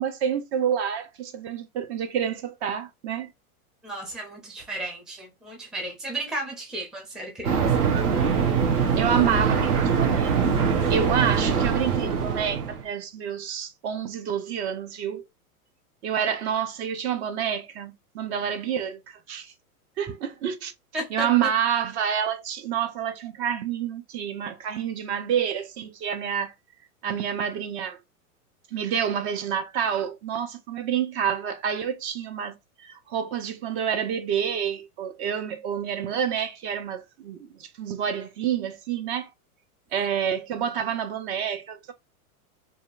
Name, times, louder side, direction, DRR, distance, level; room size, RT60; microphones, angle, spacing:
voice 1, 0.0-3.3 8.6-8.7 9.0-15.2 16.0-19.5 20.0-20.7 21.1-26.5 27.0-28.0 28.7-39.3 39.9-41.9, right 8 dB, 50° right, 0.6 m, -28 dB
voice 2, 3.8-7.6 20.9-21.3, right 1 dB, ahead, 0.4 m, -34 dB
sound 1, 7.4-12.8, right 6 dB, 80° right, 1.0 m, -23 dB
2.7 x 2.3 x 2.4 m
hypercardioid pair, 110°, 44 cm